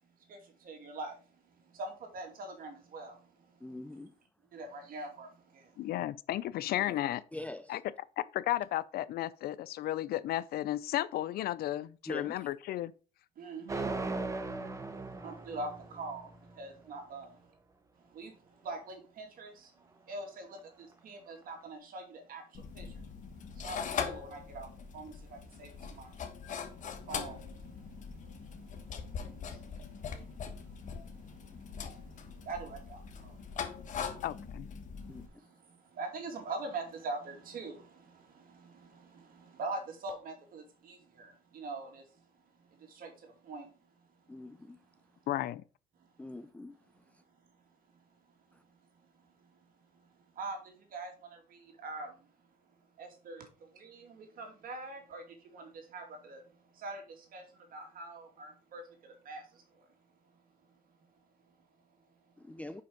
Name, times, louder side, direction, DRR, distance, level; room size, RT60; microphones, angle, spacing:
voice 1, 0.0-4.0 4.5-5.9 13.4-17.5 18.0-26.2 26.4-34.2 35.0-45.3 45.9-46.4 46.9-62.6, right 3 dB, 55° right, 2.6 m, -46 dB
voice 2, 3.6-4.1 6.9-7.0 7.3-7.8 12.1-12.5 35.1-35.2 44.3-44.8 46.2-46.8 48.5-48.6 62.4-62.8, left 1 dB, 10° left, 0.4 m, -43 dB
voice 3, 5.8-7.2 7.7-7.8 8.3-12.9 34.2-34.7 45.3-45.6, left 14 dB, 65° left, 0.5 m, -33 dB
sound 1, 13.7-16.6, right 3 dB, 20° right, 1.0 m, -38 dB
sound 2, 22.5-35.3, left 6 dB, 50° left, 1.2 m, -41 dB
5.6 x 5.2 x 5.1 m
cardioid pair, 110°, 17 cm